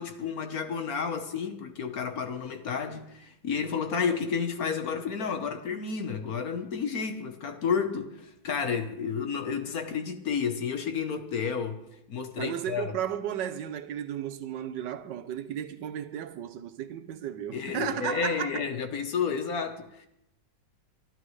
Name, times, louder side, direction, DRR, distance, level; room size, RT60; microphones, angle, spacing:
voice 1, 0.0-11.8 12.1-12.9 17.5-20.1, left 6 dB, 55° left, 1.5 m, -31 dB
voice 2, 12.4-18.6, right 10 dB, 75° right, 1.4 m, -34 dB
24.0 x 12.0 x 3.2 m
omnidirectional pair, 2.0 m